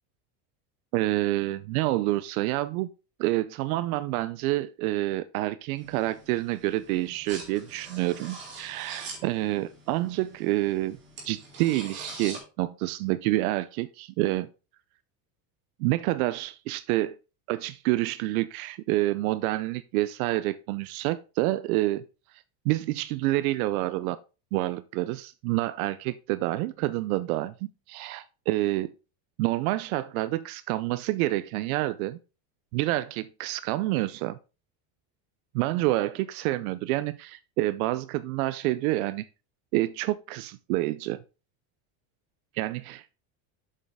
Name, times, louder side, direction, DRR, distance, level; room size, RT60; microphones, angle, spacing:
voice 1, 0.9-2.9 3.2-11.0 11.2-14.5 15.8-17.2 17.5-22.0 22.7-24.2 24.5-27.5 27.9-28.9 29.4-32.2 32.7-34.4 35.5-39.3 39.7-41.2 42.5-43.2, right 17 dB, 80° right, 0.5 m, -28 dB
sound 1, 5.8-12.4, right 3 dB, 25° right, 2.4 m, -44 dB
7.5 x 6.3 x 3.5 m
cardioid pair, 170°, 43 cm